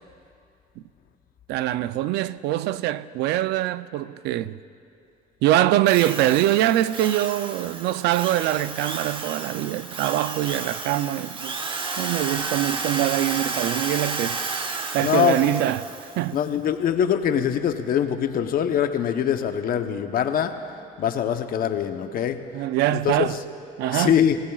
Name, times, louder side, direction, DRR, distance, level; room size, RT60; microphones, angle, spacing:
voice 1, 1.5-4.6 5.4-11.6 12.0-14.4 14.9-15.9 16.2-16.4 22.5-23.4 23.8-24.2, right 14 dB, 85° right, 0.4 m, -23 dB
Drill, 5.9-16.3, right 4 dB, 30° right, 0.9 m, -32 dB
voice 2, 15.0-15.5 16.3-20.5 21.0-22.4 22.9-23.4 23.9-24.4, left 9 dB, 60° left, 0.9 m, -23 dB
25.0 x 16.0 x 2.4 m
cardioid pair, 110°, 17 cm